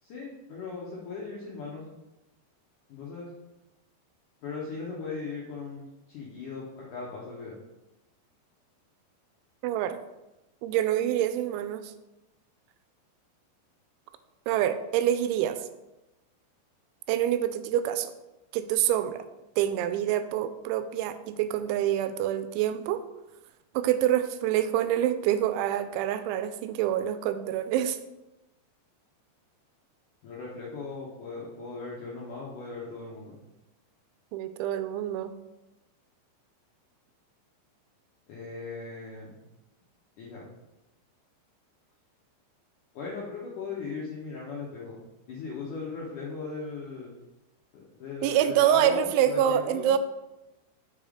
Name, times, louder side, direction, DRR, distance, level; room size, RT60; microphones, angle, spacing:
voice 1, 0.0-1.8 2.9-3.3 4.4-7.6 30.2-33.3 38.3-39.4 40.2-40.4 42.9-45.0 45.3-47.1 47.7-50.0, left 4 dB, 75° left, -5 dB, 1.8 m, -38 dB
voice 2, 9.6-10.0 10.6-11.9 14.5-15.6 17.1-18.1 18.5-19.2 19.6-23.0 23.8-28.0 34.3-35.3 48.2-50.0, right 11 dB, 85° right, 11 dB, 2.9 m, -26 dB
6.2 x 5.5 x 5.0 m, 0.99 s
omnidirectional pair, 5.3 m